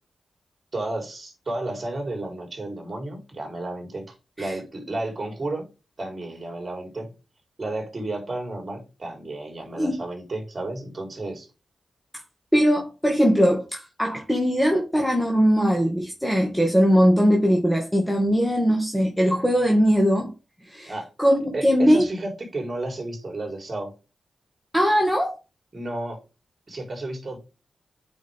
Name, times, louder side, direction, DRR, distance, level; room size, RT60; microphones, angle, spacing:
voice 1, 0.7-5.7 6.0-7.1 7.6-11.5 20.9-21.1 21.5-23.9 25.7-26.2 26.7-27.4, right 2 dB, 40° right, 4.2 m, -32 dB
voice 2, 12.5-20.3 20.6-20.9 21.2-22.0 24.7-25.4, equal, 5° left, 2.1 m, -20 dB
8.8 x 5.1 x 3.7 m
cardioid pair, 65°, 0 cm